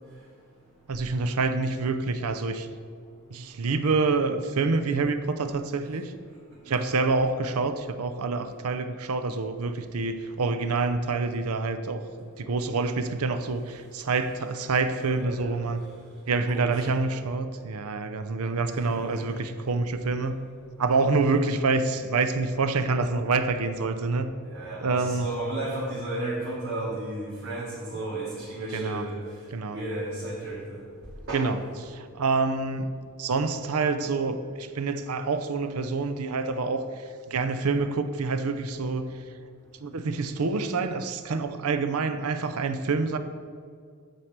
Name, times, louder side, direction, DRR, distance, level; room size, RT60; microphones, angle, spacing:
voice 1, 0.9-2.7 3.3-6.1 6.7-15.8 16.3-20.4 20.8-24.3 24.8-25.2 28.7-29.0 29.5-29.8 31.3-31.6 31.9-32.9 33.2-39.2 39.8-43.2, right 3 dB, 80° right, 10 dB, 0.6 m, -27 dB
voice 2, 15.0-15.7 16.3-16.8 18.7-19.2 24.5-29.2 29.7-30.8 31.3-31.5, right 2 dB, 65° right, -9 dB, 2.4 m, -34 dB
9.0 x 4.7 x 6.6 m, 2.1 s
head